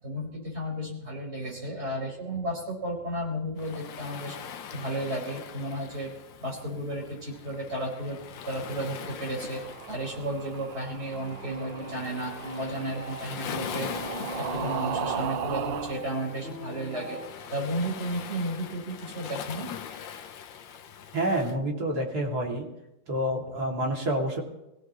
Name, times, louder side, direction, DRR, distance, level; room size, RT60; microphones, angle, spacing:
voice 1, 0.0-6.1 6.4-8.2 8.5-13.9 14.2-17.2 17.5-19.7, right 1 dB, 30° right, -3 dB, 5.2 m, -33 dB
Waves surf, 3.6-21.6, left 8 dB, 75° left, 1.6 m, -42 dB
sound 1, 9.3-16.0, right 9 dB, 70° right, 1.4 m, -37 dB
sound 2, 11.1-17.3, left 1 dB, 85° right, 7.1 m, -39 dB
voice 2, 21.1-22.7 23.1-24.4, right 1 dB, 50° right, -1 dB, 3.1 m, -28 dB
25.5 x 16.5 x 3.1 m, 0.90 s
omnidirectional pair, 2.1 m